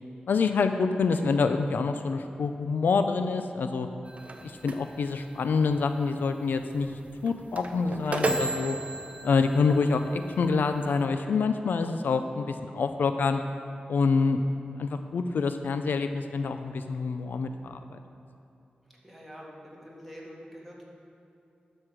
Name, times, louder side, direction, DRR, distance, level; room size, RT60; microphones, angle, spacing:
voice 1, 0.3-3.9 4.4-6.9 7.2-8.8 9.2-13.4 13.9-14.4 14.8-18.0, left 4 dB, 90° left, 8 dB, 0.4 m, -26 dB
sound 1, 4.0-11.1, right 2 dB, 45° right, 0.7 m, -36 dB
voice 2, 18.9-20.8, equal, 5° left, -4 dB, 2.0 m, -46 dB
12.0 x 6.3 x 4.9 m, 2.7 s
wide cardioid pair, 110°, 3 cm